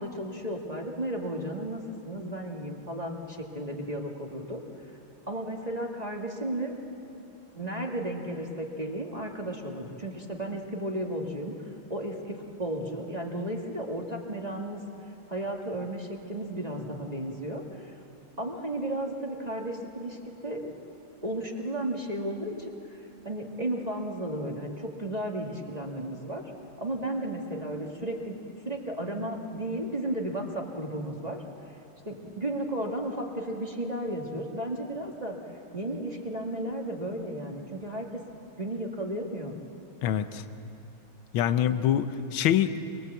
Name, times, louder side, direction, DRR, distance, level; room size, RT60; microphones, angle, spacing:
voice 1, 0.0-4.6 5.3-6.7 7.5-11.5 11.9-14.8 15.3-17.9 18.4-20.7 21.2-26.4 26.8-28.3 28.6-31.4 32.0-35.4 35.7-38.1 38.6-39.5, right 1 dB, 20° right, 0 dB, 1.6 m, -34 dB
voice 2, 40.0-40.4 41.3-42.8, left 10 dB, 80° left, 11 dB, 1.7 m, -25 dB
25.0 x 22.0 x 8.0 m, 2.8 s
omnidirectional pair, 2.2 m